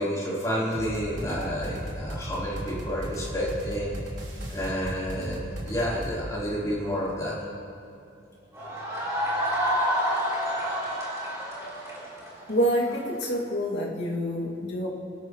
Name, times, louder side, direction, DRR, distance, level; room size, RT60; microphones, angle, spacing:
voice 1, 0.0-3.9 4.5-7.4, equal, 20° left, -7 dB, 3.9 m, -30 dB
sound 1, 0.7-6.2, equal, 85° right, 3.3 m, -36 dB
sound 2, 8.5-13.3, equal, 15° right, 3.4 m, -28 dB
voice 2, 12.5-14.9, equal, 60° left, -3 dB, 2.4 m, -27 dB
22.5 x 12.5 x 3.2 m, 2.8 s
head